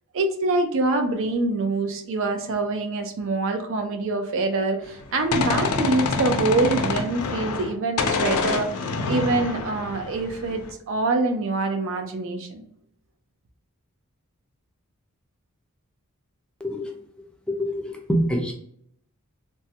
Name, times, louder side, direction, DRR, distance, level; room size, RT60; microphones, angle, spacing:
voice 1, 0.1-10.6 10.9-12.6, right 3 dB, 60° right, 5 dB, 0.4 m, -25 dB
Gunshot gunfire, 4.9-7.7 8.0-10.7, left 4 dB, 90° left, 0.5 m, -26 dB
voice 2, 16.6-16.9 17.5-18.5, equal, 5° left, 1 dB, 0.4 m, -25 dB
3.3 x 2.1 x 2.7 m, 0.68 s
head